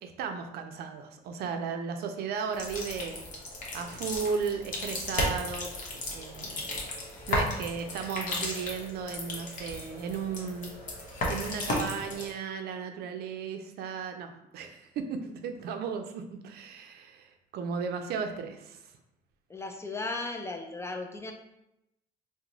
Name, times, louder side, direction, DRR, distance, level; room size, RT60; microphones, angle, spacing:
voice 1, 0.0-3.2 3.7-5.7 6.1-6.6 7.3-10.7 11.0-18.9, right 6 dB, 70° right, 6 dB, 0.4 m, -35 dB
sound 1, 2.5-12.3, left 1 dB, 50° left, 0.9 m, -35 dB
voice 2, 19.5-21.3, left 3 dB, 15° left, 4 dB, 0.3 m, -36 dB
2.9 x 2.1 x 3.8 m, 0.85 s
cardioid pair, 110°, 17 cm